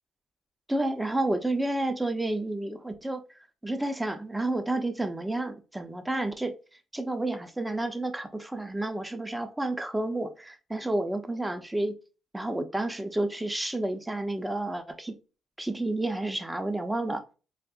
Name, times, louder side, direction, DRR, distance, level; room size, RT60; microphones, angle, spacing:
voice 1, 0.7-3.2 3.6-6.5 6.9-12.0 12.3-15.2 15.6-17.2, right 2 dB, 10° right, 0.5 m, -30 dB
4.8 x 2.5 x 2.3 m
cardioid pair, 90°, 0 cm